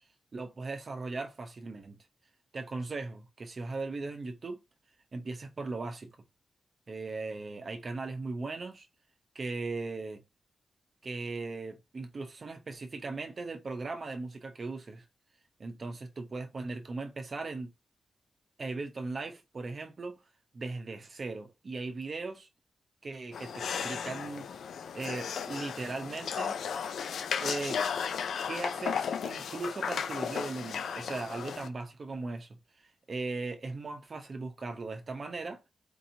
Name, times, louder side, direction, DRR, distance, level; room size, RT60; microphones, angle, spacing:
voice 1, 0.3-2.0 2.5-4.6 5.1-6.1 6.9-8.9 9.3-10.2 11.0-15.1 15.6-17.7 18.6-20.2 20.5-22.5 23.0-24.4 24.9-26.5 27.4-27.8 28.4-35.6, right 3 dB, 35° right, 0.7 m, -38 dB
sound 1, 23.3-31.7, left 7 dB, 90° left, 0.4 m, -35 dB
4.5 x 2.8 x 2.7 m
wide cardioid pair, 170°, 0 cm